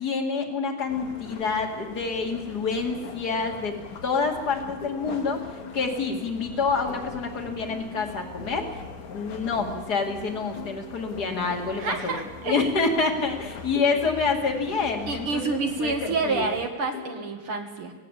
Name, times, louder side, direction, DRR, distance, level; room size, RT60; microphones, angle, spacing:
voice 1, 0.0-3.7 4.0-8.7 9.0-12.1 12.4-16.5, left 4 dB, 35° left, 2 dB, 2.7 m, -27 dB
sound 1, 0.9-16.7, left 5 dB, 70° left, 3.0 m, -42 dB
sound 2, 1.2-17.2, left 5 dB, 90° left, 3.1 m, -46 dB
voice 2, 11.8-12.7 15.1-17.9, right 3 dB, 50° right, 4 dB, 2.4 m, -28 dB
19.0 x 17.5 x 8.4 m, 1.3 s
omnidirectional pair, 3.3 m